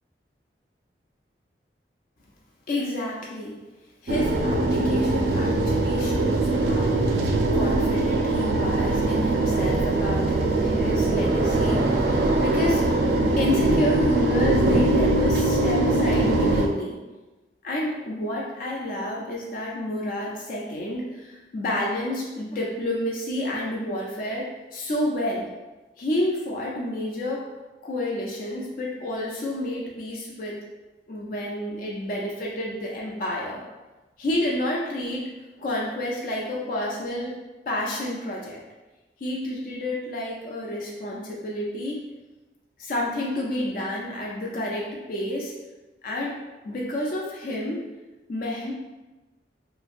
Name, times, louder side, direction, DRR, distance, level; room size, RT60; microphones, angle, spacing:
voice 1, 2.7-3.5 4.0-7.2 7.5-12.9 13.4-17.0 17.6-25.5 26.0-27.5 27.8-30.6 31.1-33.6 34.2-35.3 35.6-37.4 37.7-38.6 39.2-42.0 42.8-45.5 46.0-46.4 46.6-47.8 48.3-48.7, left 1 dB, 50° left, -3 dB, 0.4 m, -30 dB
sound 1, 4.1-16.7, right 2 dB, 60° right, 0.3 m, -22 dB
2.9 x 2.5 x 2.4 m, 1.1 s
head